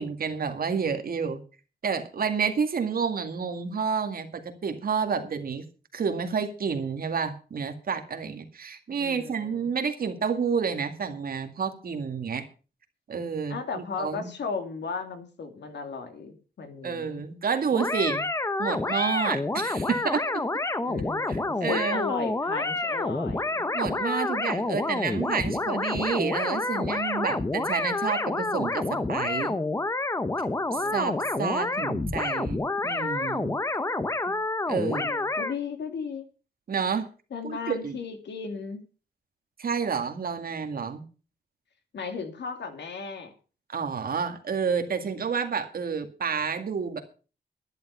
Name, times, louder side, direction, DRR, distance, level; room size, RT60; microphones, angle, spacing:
voice 1, 0.0-1.4 1.8-5.6 5.9-12.4 13.1-14.3 16.8-18.3 18.6-20.4 21.6-22.0 23.7-29.6 30.7-31.1 31.4-33.5 34.3-34.4 34.7-35.1 36.7-37.0 37.4-38.0 39.6-41.0 43.7-47.0, right 6 dB, 55° right, 6 dB, 2.1 m, -29 dB
voice 2, 9.0-9.7 13.5-17.2 20.8-23.7 30.7-31.5 34.8-36.2 37.3-38.8 41.9-43.3, left 5 dB, 90° left, 6 dB, 2.7 m, -36 dB
sound 1, 17.7-35.5, left 2 dB, 15° left, 0.8 m, -28 dB
11.5 x 11.0 x 5.7 m, 0.36 s
wide cardioid pair, 170°, 18 cm